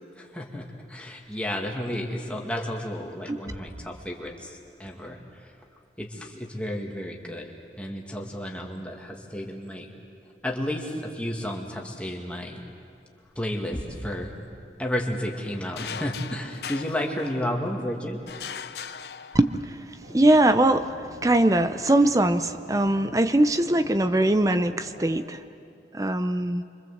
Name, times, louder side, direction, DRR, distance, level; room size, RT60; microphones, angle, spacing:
voice 1, 0.2-5.5 6.0-9.9 10.4-12.6 13.4-14.3 14.8-18.2, left 1 dB, 5° left, 0 dB, 2.2 m, -32 dB
sound 1, 15.8-17.7 18.3-19.8, left 7 dB, 65° left, 0.7 m, -39 dB
voice 2, 19.3-19.9 20.1-20.9 21.2-25.4 25.9-26.6, right 1 dB, 20° right, 10 dB, 0.6 m, -21 dB
sound 2, 20.0-25.2, equal, 85° right, 3.0 m, -45 dB
27.5 x 24.5 x 7.9 m, 2.5 s
head